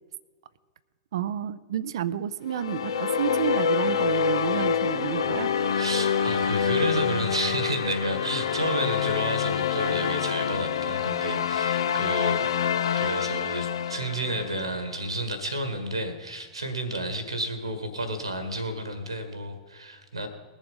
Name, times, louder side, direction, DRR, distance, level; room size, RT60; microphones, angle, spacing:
voice 1, 1.1-5.5, right 10 dB, 65° right, 16 dB, 0.5 m, -30 dB
sound 1, 2.5-14.9, left 7 dB, 70° left, 0.6 m, -26 dB
voice 2, 5.7-12.5 12.9-20.3, right 1 dB, 85° right, 10 dB, 1.7 m, -31 dB
20.5 x 7.2 x 5.3 m, 1.5 s
figure-of-eight pair, 95°, 3 cm